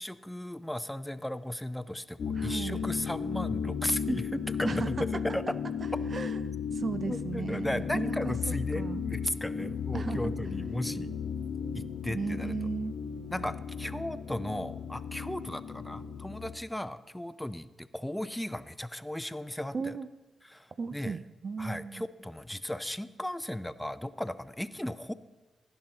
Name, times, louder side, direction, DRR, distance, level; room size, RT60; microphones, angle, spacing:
voice 1, 0.0-5.4 7.1-11.1 11.7-12.5 13.3-19.9 20.5-21.2 21.6-25.1, left 1 dB, 5° left, 13 dB, 0.5 m, -36 dB
sound 1, 2.2-16.5, left 6 dB, 65° left, 0.9 m, -35 dB
voice 2, 2.3-2.8 4.6-5.0 6.1-6.4 6.7-9.0 9.9-10.3 12.1-12.9 13.4-13.6 19.7-20.1 20.8-22.1, right 5 dB, 50° right, 13 dB, 0.4 m, -36 dB
15.0 x 5.6 x 3.9 m, 1.2 s
cardioid pair, 55°, 0 cm